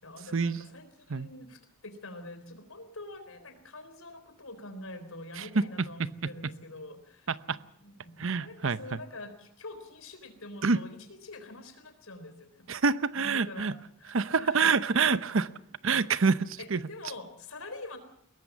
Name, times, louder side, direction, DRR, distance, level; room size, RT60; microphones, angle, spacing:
voice 1, 0.0-12.7 13.2-14.7 16.6-18.0, left 2 dB, 75° left, 9 dB, 3.8 m, -45 dB
voice 2, 8.2-9.0 10.6-10.8 12.7-13.7 14.1-15.5 15.8-16.8, right 4 dB, 65° right, 15 dB, 0.8 m, -26 dB
22.0 x 18.5 x 7.3 m, 0.69 s
head